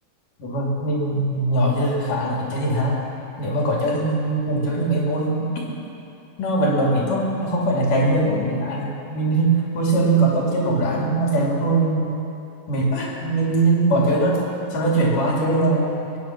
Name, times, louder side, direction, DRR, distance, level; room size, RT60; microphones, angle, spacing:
voice 1, 0.4-3.0 3.4-5.5 6.4-12.2 12.7-14.5 14.7-16.1, right 2 dB, 90° left, -3 dB, 4.2 m, -21 dB
21.0 x 9.6 x 5.9 m, 2.7 s
omnidirectional pair, 3.6 m